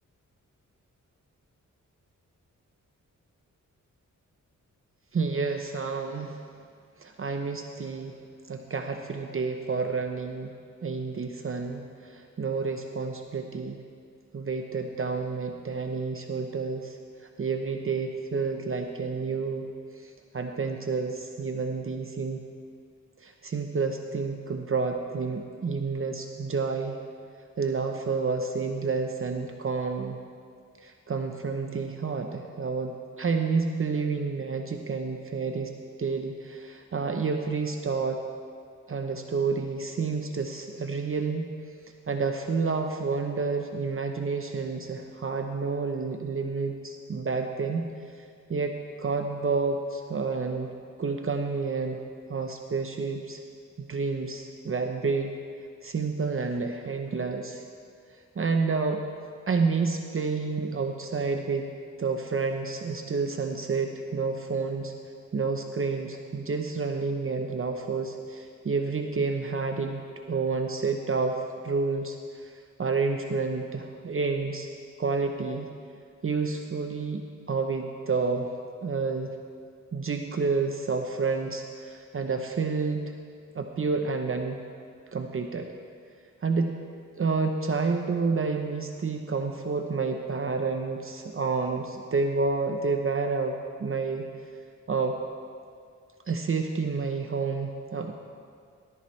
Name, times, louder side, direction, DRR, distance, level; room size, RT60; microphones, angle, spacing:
voice 1, 5.1-6.4 7.0-8.2 8.5-10.5 10.8-13.8 14.3-17.0 17.4-19.7 20.0-22.5 23.2-27.0 27.6-30.2 30.8-35.7 36.0-38.2 38.9-41.5 42.1-47.9 48.5-50.7 51.0-52.0 52.3-53.4 53.8-55.3 55.8-57.6 58.4-59.0 59.5-61.7 62.0-64.9 65.3-70.0 70.3-72.5 72.8-74.7 75.0-75.7 76.2-78.5 78.8-79.4 79.9-83.1 83.5-84.6 85.1-85.7 86.4-86.8 87.2-94.3 94.9-95.2 96.3-98.1, right 4 dB, 45° right, 4 dB, 0.8 m, -29 dB
18.0 x 14.0 x 3.2 m, 2.2 s
cardioid pair, 80°, 31 cm